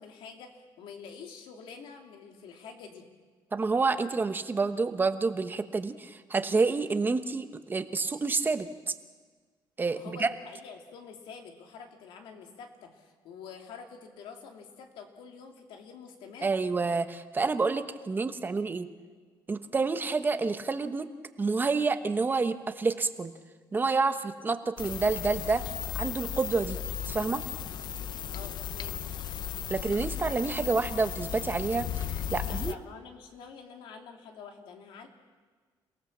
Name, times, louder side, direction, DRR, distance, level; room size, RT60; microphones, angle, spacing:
voice 1, 0.0-3.1 9.9-16.6 28.3-29.1 32.4-35.1, left 6 dB, 90° left, 3 dB, 2.9 m, -47 dB
voice 2, 3.5-8.9 9.8-10.3 16.4-18.9 19.5-21.1 21.4-23.3 23.7-25.6 25.9-26.8 27.1-27.4 29.7-32.8, right 4 dB, 25° right, 9 dB, 1.1 m, -28 dB
sound 1, 24.8-32.7, left 10 dB, 60° left, 0.7 m, -35 dB
29.0 x 18.0 x 7.4 m, 1.4 s
cardioid pair, 130°, 9 cm